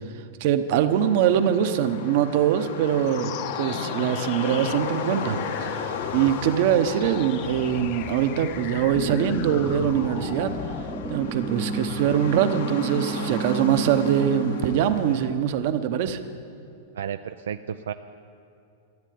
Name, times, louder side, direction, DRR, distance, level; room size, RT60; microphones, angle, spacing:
voice 1, 0.4-10.5 11.1-16.2, right 9 dB, 55° right, 10 dB, 0.9 m, -23 dB
sound 1, 0.9-15.3, left 5 dB, 75° left, 1.4 m, -36 dB
sound 2, 3.0-12.5, left 15 dB, 40° left, 0.3 m, -37 dB
sound 3, 8.9-14.8, right 4 dB, 20° right, 0.5 m, -32 dB
voice 2, 16.9-17.9, right 8 dB, 85° right, 9 dB, 0.4 m, -32 dB
14.0 x 8.2 x 9.4 m, 2.5 s
hypercardioid pair, 140°, 0 cm